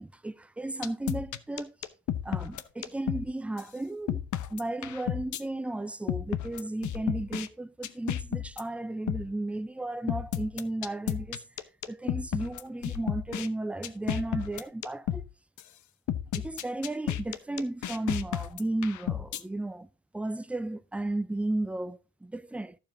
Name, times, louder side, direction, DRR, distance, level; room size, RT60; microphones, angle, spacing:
voice 1, 0.0-1.7 2.2-4.2 4.5-11.4 11.9-15.2 16.3-19.9 20.1-22.8, right 2 dB, 5° right, 0.4 m, -34 dB
sound 1, 0.8-3.3 3.6-3.7 4.1-5.4 6.1-7.5 7.8-8.6 9.1-9.3 10.1-13.5 13.8-15.3 15.6-15.7 16.1-19.4, left 11 dB, 75° left, 0.8 m, -32 dB
11.5 x 7.2 x 3.9 m
cardioid pair, 90°, 30 cm